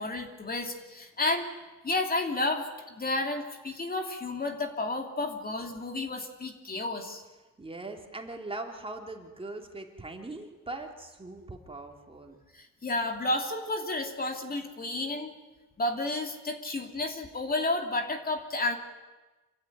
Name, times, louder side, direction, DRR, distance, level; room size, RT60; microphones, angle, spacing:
voice 1, 0.0-1.5 1.8-7.2 12.5-15.3 15.8-18.8, left 2 dB, 30° left, 4 dB, 2.9 m, -31 dB
voice 2, 7.6-12.4, right 2 dB, 20° right, 2 dB, 3.0 m, -40 dB
26.5 x 15.5 x 9.5 m, 1.2 s
cardioid pair, 90°, 30 cm